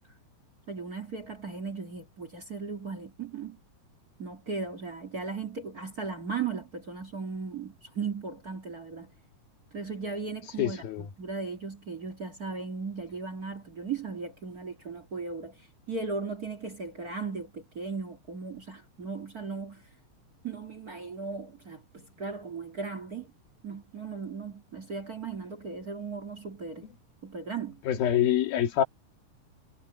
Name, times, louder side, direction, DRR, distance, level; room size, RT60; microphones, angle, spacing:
voice 1, 0.7-3.6 4.2-9.1 9.7-19.8 20.4-23.3 23.6-26.9 27.2-27.8, right 4 dB, 30° right, 2.0 m, -37 dB
voice 2, 10.6-11.0 27.9-28.8, left 11 dB, 90° left, 3.9 m, -25 dB
omnidirectional pair, 4.1 m